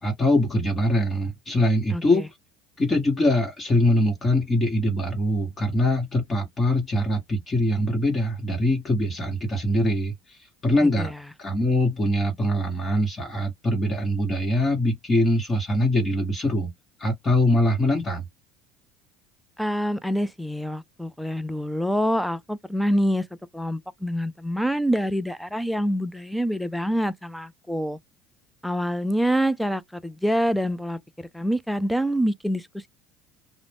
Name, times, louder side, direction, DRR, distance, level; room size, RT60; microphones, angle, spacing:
voice 1, 0.0-2.3 2.8-10.4 10.6-11.1 11.4-16.7 17.0-18.3, left 1 dB, 25° left, 1.1 m, -23 dB
voice 2, 1.9-2.3 10.8-11.2 19.6-23.2 23.5-28.0 28.6-32.9, equal, ahead, 0.4 m, -26 dB
2.4 x 2.0 x 3.4 m
supercardioid pair, 115°, 0 cm